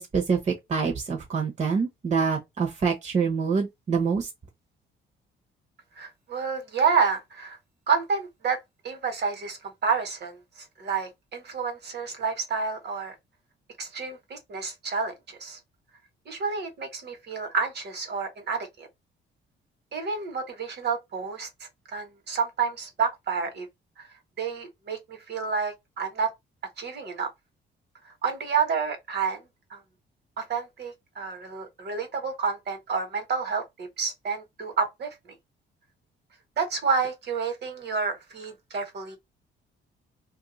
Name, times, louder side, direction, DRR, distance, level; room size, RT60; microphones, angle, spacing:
voice 1, 0.0-4.3, right 5 dB, 35° right, 1.1 m, -26 dB
voice 2, 6.0-7.6 7.9-8.6 8.8-10.4 10.8-13.1 13.8-15.6 16.3-18.9 19.9-23.7 24.0-24.1 24.4-26.3 26.8-27.3 28.2-29.4 29.7-29.8 30.4-35.1 36.6-39.2, right 5 dB, 55° right, 1.5 m, -29 dB
2.6 x 2.5 x 3.9 m
cardioid pair, 90°, 20 cm